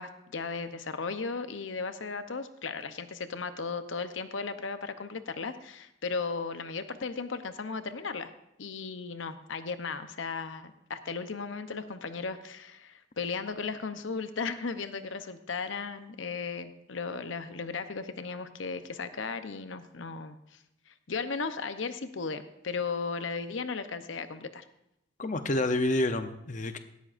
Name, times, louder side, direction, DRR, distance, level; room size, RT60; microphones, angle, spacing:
voice 1, 0.0-8.3 8.6-20.6 20.9-24.6, left 4 dB, 80° left, 10 dB, 0.8 m, -36 dB
voice 2, 25.2-26.8, left 1 dB, 40° left, 8 dB, 0.7 m, -28 dB
17.5 x 13.5 x 2.6 m, 0.84 s
head